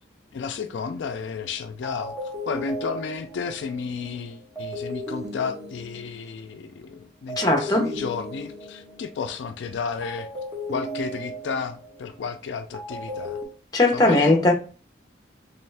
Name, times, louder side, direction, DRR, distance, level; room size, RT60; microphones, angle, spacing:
voice 1, 0.3-10.3 10.7-13.4 13.9-14.3, left 5 dB, 65° left, 0.3 m, -32 dB
sound 1, 1.4-1.5 1.8-6.8 7.3-9.5 10.0-13.4, equal, 15° right, 1.1 m, -36 dB
voice 2, 7.4-7.9 13.7-14.5, left 2 dB, 20° left, 0.6 m, -19 dB
3.5 x 3.1 x 3.2 m
head